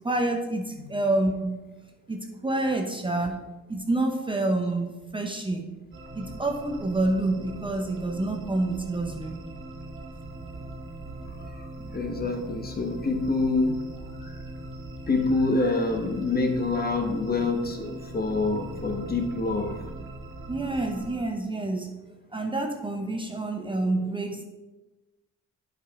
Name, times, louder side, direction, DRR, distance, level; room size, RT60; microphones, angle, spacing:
voice 1, 0.0-1.6 2.1-3.4 3.7-5.6 6.1-9.4 11.8-12.0 20.5-22.0 22.3-24.4, right 2 dB, 15° right, 3 dB, 0.7 m, -28 dB
sound 1, 5.9-21.2, right 2 dB, 45° right, 1.3 m, -40 dB
voice 2, 11.5-13.8 14.2-14.4 15.1-19.8, left 3 dB, 30° left, 4 dB, 1.1 m, -26 dB
8.6 x 5.1 x 3.6 m, 1.1 s
cardioid pair, 90°, 30 cm